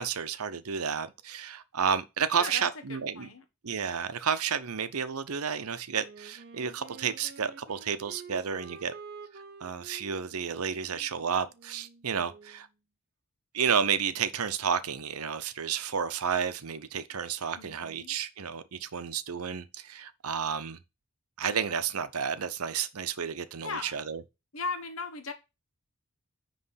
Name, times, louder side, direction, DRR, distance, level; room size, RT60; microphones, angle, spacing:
voice 1, 0.0-3.3 3.6-8.9 9.6-12.7 13.5-20.8 21.4-24.2, right 7 dB, 80° right, 0.7 m, -31 dB
voice 2, 2.3-3.4 17.5-18.2 23.6-23.9 24.5-25.3, left 4 dB, 65° left, 1.5 m, -38 dB
Wind instrument woodwind instrument, 5.9-12.6, right 5 dB, 50° right, 0.8 m, -49 dB
9.7 x 3.2 x 5.7 m
head